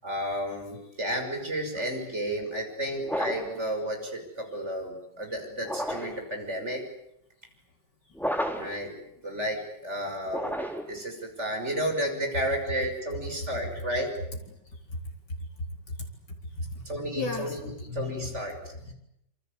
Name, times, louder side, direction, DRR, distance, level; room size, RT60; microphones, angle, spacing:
voice 1, 0.0-6.8 8.5-8.9 9.2-10.6 10.9-14.2 16.6-18.9, equal, 40° right, 3 dB, 6.6 m, -32 dB
sound 1, 3.0-3.6 5.6-6.2 8.1-8.8 10.2-11.0, equal, ahead, 3.6 m, -31 dB
voice 2, 13.4-13.7 14.5-15.0 15.9-16.0 16.3-16.9 17.1-17.9 18.9-19.0, left 2 dB, 80° left, 1 dB, 4.8 m, -37 dB
27.5 x 25.5 x 8.4 m, 0.79 s
omnidirectional pair, 1.9 m